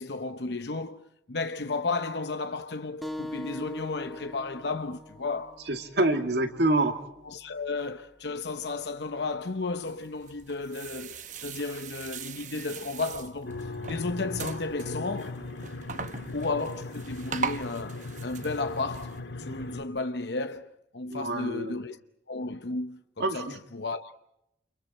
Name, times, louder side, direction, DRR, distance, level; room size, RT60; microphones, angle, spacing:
voice 1, 0.0-5.7 7.2-15.4 16.3-22.0 22.3-24.1, left 3 dB, 70° left, 0.9 m, -33 dB
sound 1, 3.0-8.1, left 1 dB, ahead, 1.5 m, -43 dB
voice 2, 5.7-6.9 21.1-21.8 23.2-23.6, right 2 dB, 70° right, 2.5 m, -26 dB
sound 2, 9.9-19.2, right 6 dB, 45° right, 0.9 m, -40 dB
sound 3, 13.4-19.8, left 2 dB, 90° left, 2.0 m, -38 dB
29.0 x 29.0 x 4.4 m
head